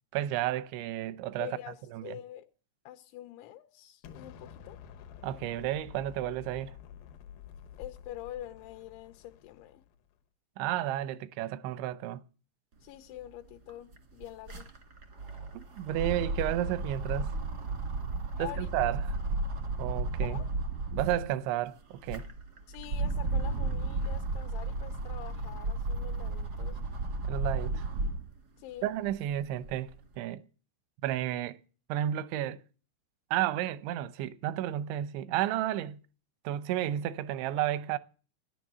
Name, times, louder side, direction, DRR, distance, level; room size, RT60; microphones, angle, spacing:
voice 1, 0.1-1.5 1.9-2.1 5.2-6.7 10.6-12.2 15.5-17.3 18.4-19.0 19.8-20.4 20.9-22.3 27.2-27.8 28.8-30.4 31.0-31.6 31.9-32.6 33.3-36.0 36.4-38.0, right 12 dB, 85° right, 3.2 m, -32 dB
voice 2, 1.4-2.5 2.9-4.8 7.8-9.8 12.8-14.7 18.4-18.7 20.2-20.5 22.7-26.8 28.6-28.9, left 14 dB, 90° left, 3.2 m, -45 dB
Explosion, 4.0-10.0, left 8 dB, 70° left, 2.3 m, -50 dB
sound 1, 13.2-13.3 13.5-21.3 21.8-28.3 28.8-30.0, right 3 dB, 65° right, 0.9 m, -34 dB
14.0 x 10.5 x 6.8 m
omnidirectional pair, 5.2 m